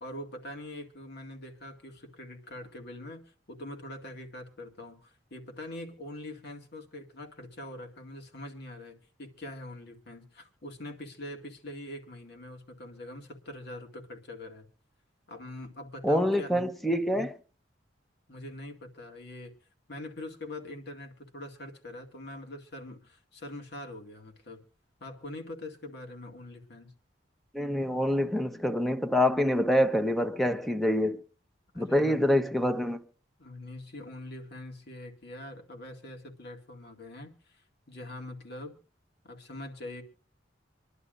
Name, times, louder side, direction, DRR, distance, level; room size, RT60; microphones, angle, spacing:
voice 1, 0.0-14.7 15.3-16.5 18.3-19.5 19.9-24.6 25.0-26.9 31.7-32.3 33.4-38.7 39.2-40.0, left 1 dB, 60° left, 2.1 m, -43 dB
voice 2, 16.0-17.3 27.5-31.2 31.8-33.0, left 1 dB, ahead, 0.9 m, -26 dB
26.0 x 11.0 x 2.5 m
head